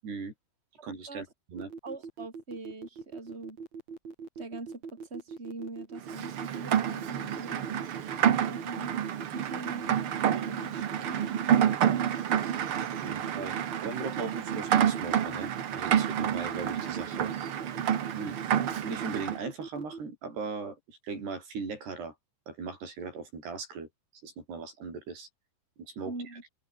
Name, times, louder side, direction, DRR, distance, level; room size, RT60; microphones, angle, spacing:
voice 1, 0.0-0.3 0.8-1.7 13.0-13.6 13.8-17.3 18.1-18.4 18.8-22.1 22.5-23.9 24.2-25.3 25.8-26.1, right 4 dB, 90° right, 9.5 m, -38 dB
sound 1, 1.6-20.0, right 5 dB, 45° right, 5.7 m, -42 dB
voice 2, 1.8-3.6 4.4-7.6 8.4-8.9 9.3-11.3 26.1-26.4, right 2 dB, 15° right, 5.3 m, -43 dB
Rain, 6.1-19.4, right 9 dB, 75° right, 1.2 m, -29 dB
omnidirectional pair, 4.6 m